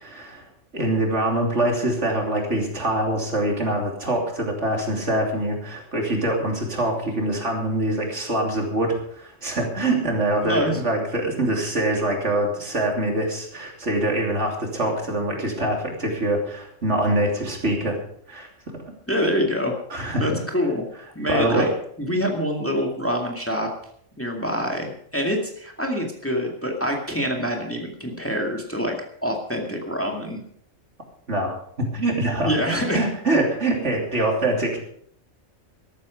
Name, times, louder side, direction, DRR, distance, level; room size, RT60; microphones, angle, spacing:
voice 1, 0.0-18.0 18.3-18.5 18.8-18.9 19.9-20.3 21.3-21.7 31.3-34.8, right 1 dB, 65° right, 1 dB, 3.3 m, -24 dB
voice 2, 10.4-10.8 19.1-19.7 20.2-20.8 21.2-21.7 22.0-23.7 24.2-29.0 29.2-30.4 32.4-33.1, equal, 10° left, 1 dB, 2.1 m, -25 dB
13.5 x 13.5 x 5.1 m, 0.65 s
omnidirectional pair, 1.3 m